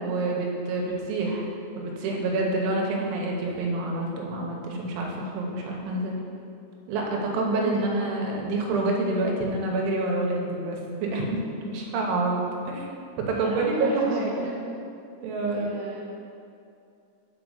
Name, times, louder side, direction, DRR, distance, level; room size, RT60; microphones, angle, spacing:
voice 1, 0.0-1.5 1.8-6.2 6.9-12.4 12.7-12.9 13.2-14.5 15.2-15.7, right 2 dB, 75° right, -1 dB, 3.3 m, -27 dB
voice 2, 7.5-8.0 13.3-14.5 15.3-16.0, right 4 dB, 60° right, -7 dB, 1.7 m, -36 dB
6.2 x 5.9 x 6.4 m, 2.5 s
omnidirectional pair, 5.7 m